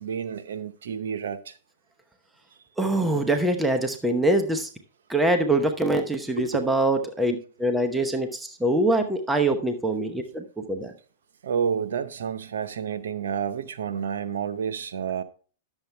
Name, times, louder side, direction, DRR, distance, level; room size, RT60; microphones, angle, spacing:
voice 1, 0.0-1.5 6.4-6.6 11.4-15.2, right 7 dB, 85° right, 0.8 m, -30 dB
voice 2, 2.8-4.7 5.1-10.9, right 1 dB, 5° right, 0.9 m, -24 dB
10.5 x 7.3 x 3.3 m
hypercardioid pair, 125°, 0 cm